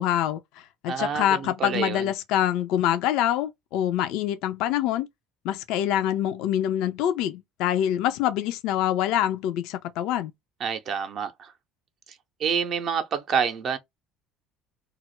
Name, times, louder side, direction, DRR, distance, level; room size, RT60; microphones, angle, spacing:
voice 1, 0.0-5.1 5.4-10.3, left 11 dB, 60° left, 0.3 m, -25 dB
voice 2, 0.9-2.1 10.6-11.5 12.4-13.8, right 7 dB, 45° right, 0.6 m, -28 dB
2.3 x 2.0 x 3.0 m
hypercardioid pair, 65°, 0 cm